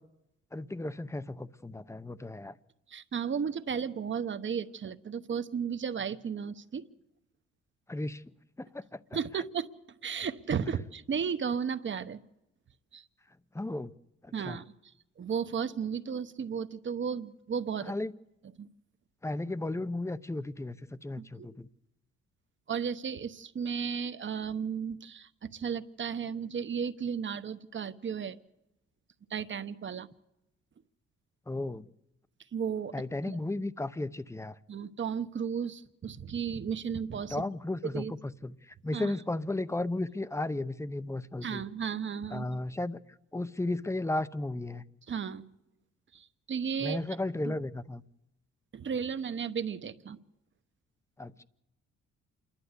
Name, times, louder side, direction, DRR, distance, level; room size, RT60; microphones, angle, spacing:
voice 1, 0.5-2.5 7.9-8.2 8.6-9.0 13.5-13.9 14.2-14.6 17.8-18.1 19.2-20.8 21.0-21.7 31.5-31.9 32.9-34.6 37.3-41.6 42.3-43.0 43.3-44.8 46.8-48.0 51.2-51.4, left 2 dB, 10° left, 14 dB, 0.7 m, -34 dB
voice 2, 2.9-6.9 9.1-9.7 10.0-12.2 12.9-13.0 14.3-14.7 15.2-17.9 18.6-18.7 21.2-21.5 22.7-28.4 29.3-30.1 32.5-32.9 33.2-33.4 34.7-37.4 37.9-38.1 38.9-39.1 41.4-42.6 45.1-45.4 46.1-47.0 47.4-47.5 48.7-50.2, right 7 dB, 40° right, 11 dB, 1.0 m, -34 dB
27.5 x 11.5 x 8.1 m, 0.90 s
cardioid pair, 90°, 30 cm